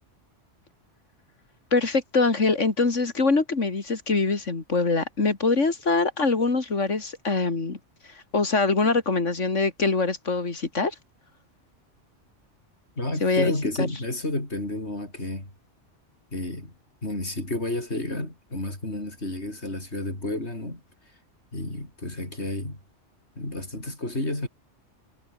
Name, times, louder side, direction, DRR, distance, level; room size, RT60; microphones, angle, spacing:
voice 1, 1.7-7.8 8.3-10.9 13.2-13.5 13.8-13.9, left 3 dB, 90° left, 3.2 m, -23 dB
voice 2, 13.0-15.5 16.3-16.7 17.0-20.8 21.5-22.8 23.4-24.5, left 1 dB, 65° left, 7.0 m, -31 dB
omnidirectional pair, 1.2 m